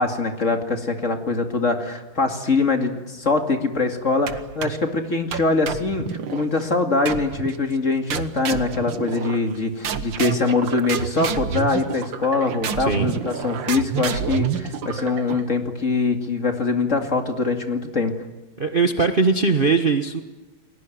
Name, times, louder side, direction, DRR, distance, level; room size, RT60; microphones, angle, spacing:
voice 1, 0.0-6.1 6.3-18.1, left 3 dB, 35° left, 5 dB, 2.7 m, -23 dB
sound 1, 4.3-4.9 5.3-6.5 7.1-7.6 8.1-9.6 9.8-15.5, right 8 dB, 65° right, 2.0 m, -29 dB
voice 2, 12.8-13.1 18.6-20.2, right 4 dB, 30° right, 6 dB, 1.2 m, -20 dB
29.5 x 20.5 x 9.3 m, 1.2 s
omnidirectional pair, 2.3 m